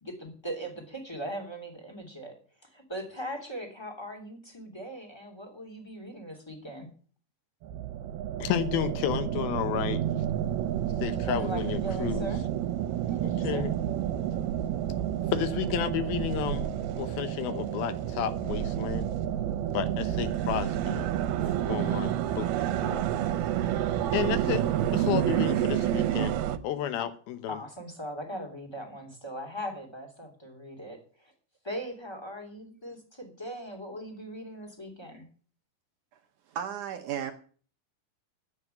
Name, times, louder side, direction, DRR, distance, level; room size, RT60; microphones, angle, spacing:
voice 1, 0.0-2.3 2.7-6.9 11.2-12.4 13.1-13.6 27.0-27.1 27.5-31.3 31.6-35.2, right 1 dB, 10° left, 2 dB, 2.4 m, -39 dB
sound 1, 7.6-26.6, right 11 dB, 85° right, 2.8 m, -29 dB
voice 2, 8.4-10.0 11.0-12.3 13.2-13.7 15.3-19.1 19.7-21.2 21.7-23.0 24.1-24.6 24.9-26.4 26.6-27.6, left 10 dB, 80° left, 12 dB, 2.9 m, -32 dB
voice 3, 36.5-37.3, right 9 dB, 70° right, 6 dB, 2.1 m, -34 dB
9.6 x 8.3 x 9.0 m, 0.43 s
omnidirectional pair, 4.3 m